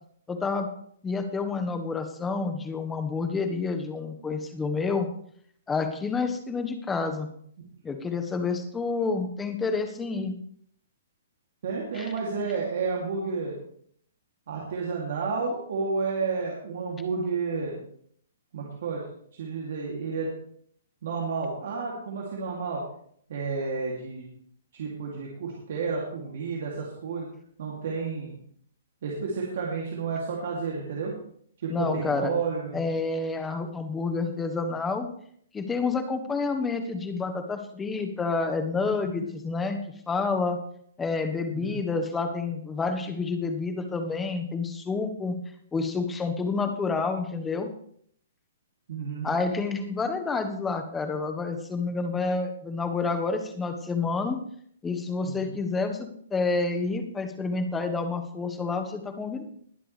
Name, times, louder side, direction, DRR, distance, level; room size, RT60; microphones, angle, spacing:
voice 1, 0.3-0.7 1.0-5.1 5.7-7.3 7.8-10.3 11.9-12.1 31.7-32.3 32.7-35.1 35.5-39.8 40.1-40.6 41.0-45.4 45.7-47.7 49.2-54.4 54.8-59.4, left 4 dB, 10° left, 7 dB, 1.3 m, -29 dB
voice 2, 11.6-13.6 14.5-17.8 18.5-19.0 19.3-20.3 21.0-22.8 23.3-24.3 24.7-27.3 27.6-28.4 29.0-31.1 31.6-32.9 39.1-39.3 41.5-41.8 48.9-49.3 55.2-55.6, right 4 dB, 60° right, -3 dB, 2.8 m, -31 dB
20.5 x 7.6 x 3.4 m, 0.63 s
hypercardioid pair, 145°, 0 cm